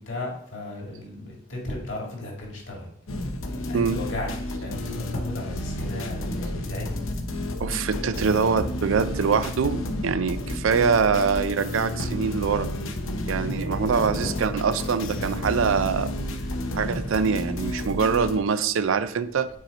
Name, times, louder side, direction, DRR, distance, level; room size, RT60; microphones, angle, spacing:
voice 1, 0.0-2.9 3.6-7.0 13.3-14.6, left 1 dB, 65° left, -1 dB, 2.0 m, -35 dB
sound 1, 3.1-18.4, left 1 dB, 80° left, 0.7 m, -31 dB
voice 2, 7.6-12.7 13.3-16.1 16.7-19.5, right 6 dB, 75° right, 14 dB, 0.4 m, -24 dB
6.2 x 4.3 x 4.0 m, 0.70 s
head